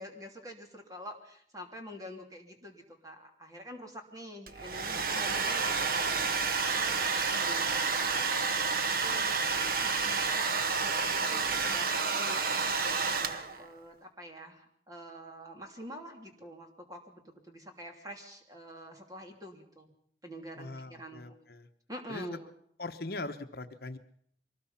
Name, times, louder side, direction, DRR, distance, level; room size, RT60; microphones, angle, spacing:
voice 1, 0.0-8.4 9.0-9.3 9.8-19.9 20.2-21.2 21.9-22.5, equal, 20° right, 3 dB, 3.0 m, -46 dB
Domestic sounds home sounds, 4.5-13.7, right 4 dB, 55° right, 1.1 m, -30 dB
voice 2, 20.6-21.7 22.1-22.4 22.8-24.0, left 2 dB, 55° left, 7 dB, 1.1 m, -40 dB
24.0 x 19.5 x 5.8 m, 0.64 s
head